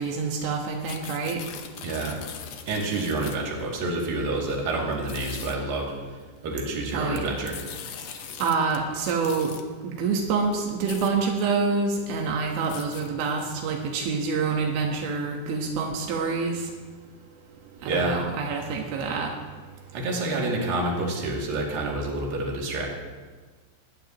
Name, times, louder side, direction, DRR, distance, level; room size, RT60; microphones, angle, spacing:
voice 1, 0.0-1.4 6.9-7.4 8.4-9.5 9.8-16.6 17.8-19.3, right 4 dB, 85° right, 1 dB, 3.7 m, -27 dB
sound 1, 0.6-3.6 4.4-4.5 4.9-5.6 6.7-8.8 9.0-9.6 10.3-10.4 10.7-11.1 11.6-11.7 12.0-13.7, left 8 dB, 80° left, 1.9 m, -41 dB
voice 2, 1.8-2.2 2.7-5.9 6.4-7.6 17.8-18.2 19.9-22.9, right 2 dB, 55° right, -2 dB, 4.1 m, -28 dB
20.0 x 18.5 x 3.0 m, 1.4 s
omnidirectional pair, 5.2 m